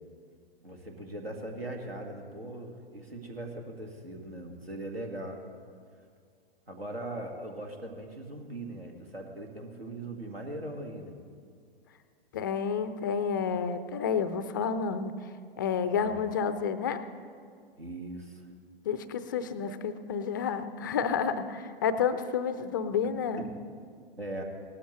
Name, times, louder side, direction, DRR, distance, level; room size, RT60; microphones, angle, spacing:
voice 1, 0.6-5.4 6.7-11.2 15.9-16.2 17.8-18.5 23.4-23.5 24.2-24.4, right 1 dB, 80° right, 3 dB, 1.9 m, -40 dB
voice 2, 12.3-15.1 15.6-17.0 18.8-23.5, left 6 dB, 20° left, 12 dB, 0.3 m, -30 dB
18.0 x 13.0 x 3.1 m, 2.2 s
figure-of-eight pair, 110°, 30 cm